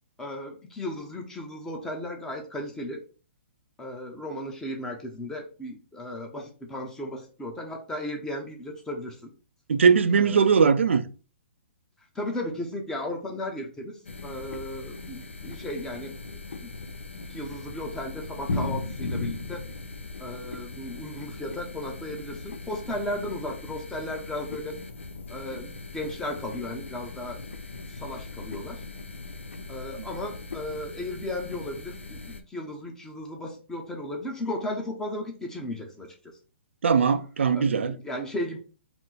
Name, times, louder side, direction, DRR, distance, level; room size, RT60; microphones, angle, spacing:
voice 1, 0.2-3.0 3.8-9.3 10.2-10.6 12.1-16.1 16.6-16.7 17.3-19.7 20.2-24.8 25.3-27.4 27.9-28.8 29.7-36.1 37.5-38.6, left 1 dB, 10° left, 0.8 m, -35 dB
voice 2, 9.7-11.1 36.8-38.0, right 6 dB, 80° right, 0.5 m, -20 dB
sound 1, 14.0-32.4, left 3 dB, 90° left, 0.6 m, -38 dB
4.3 x 2.1 x 4.0 m
hypercardioid pair, 140°, 6 cm